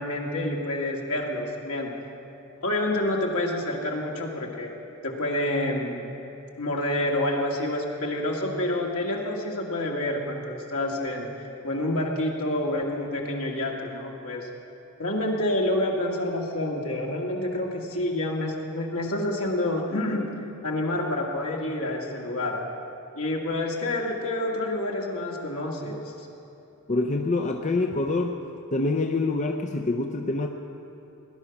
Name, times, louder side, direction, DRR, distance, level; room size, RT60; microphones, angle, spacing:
voice 1, 0.0-1.9 2.6-4.7 5.0-6.1 6.6-11.3 11.6-14.5 15.0-20.3 20.6-22.6 23.1-26.3, left 1 dB, 70° left, -1 dB, 2.0 m, -28 dB
voice 2, 26.9-28.4 28.7-30.5, left 2 dB, 35° left, 4 dB, 0.5 m, -26 dB
18.0 x 11.0 x 5.8 m, 2.9 s
head